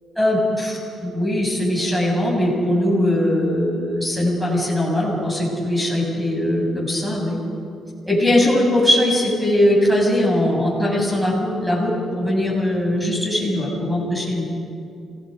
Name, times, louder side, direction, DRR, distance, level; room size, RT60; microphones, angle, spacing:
voice 1, 0.2-0.7 1.0-7.4 8.1-14.5, left 1 dB, 5° right, -2 dB, 7.1 m, -20 dB
27.0 x 18.0 x 5.3 m, 2.5 s
cardioid pair, 90°, 0 cm